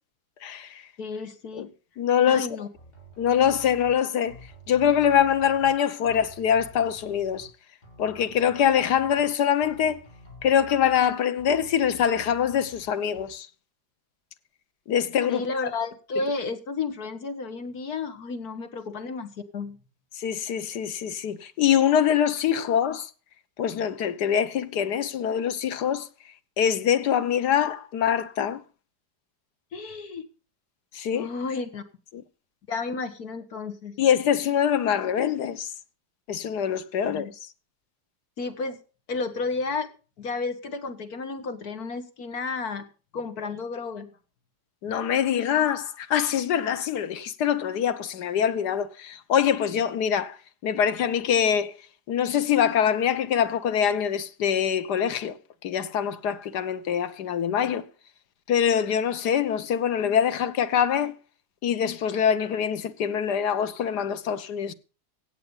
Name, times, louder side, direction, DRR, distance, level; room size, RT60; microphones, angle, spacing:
voice 1, 0.4-0.8 1.5-1.7 2.0-2.5 3.2-4.4 4.7-7.5 8.0-10.0 10.4-13.5 14.9-15.5 20.1-23.1 23.6-26.1 26.6-28.6 30.9-31.3 32.1-32.2 34.0-35.7 36.3-37.3 44.8-50.4 50.6-51.7 52.1-55.4 55.6-57.9 58.5-61.1 61.6-64.7, left 8 dB, 90° left, 1.6 m, -24 dB
voice 2, 1.0-1.7 2.3-2.7 15.3-19.8 29.7-30.3 31.1-31.8 32.7-34.0 37.0-37.3 38.4-38.8 39.1-39.9 40.2-42.8 43.1-44.1, left 4 dB, 70° left, 2.2 m, -32 dB
sound 1, 2.7-3.9 4.3-5.7 6.0-7.5 7.8-9.3 9.6-11.0 11.4-12.8 13.1-13.3, equal, 25° left, 3.6 m, -48 dB
16.5 x 8.5 x 5.5 m
omnidirectional pair, 1.7 m